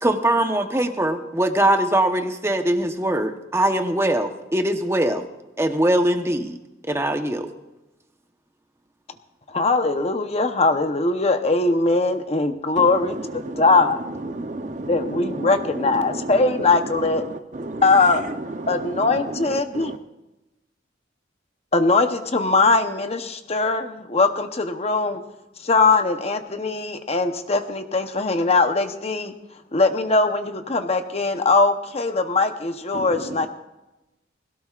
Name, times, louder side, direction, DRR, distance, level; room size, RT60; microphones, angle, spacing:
voice 1, 0.0-5.2 5.6-6.6 6.9-7.5, right 1 dB, 15° right, 6 dB, 1.0 m, -21 dB
voice 2, 9.5-14.0 14.9-17.2 17.8-18.2 18.7-19.9 21.7-25.2 25.6-29.3 29.7-33.5, left 3 dB, 35° left, 7 dB, 0.9 m, -21 dB
voice 3, 14.3-15.5 17.6-17.8 18.6-18.7 19.7-20.0 32.9-33.1, right 2 dB, 40° right, 8 dB, 0.7 m, -32 dB
20.5 x 17.0 x 2.5 m, 0.98 s
head